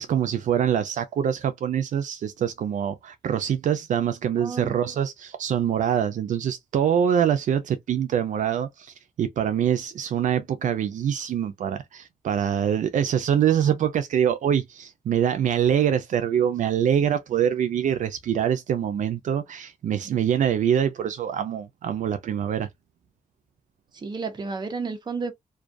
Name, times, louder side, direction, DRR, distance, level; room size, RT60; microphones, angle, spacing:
voice 1, 0.0-22.7, right 9 dB, 75° right, 0.4 m, -24 dB
voice 2, 4.4-4.8 19.8-20.2 23.9-25.3, right 4 dB, 35° right, 0.6 m, -32 dB
2.3 x 2.2 x 2.4 m
wide cardioid pair, 140°, 13 cm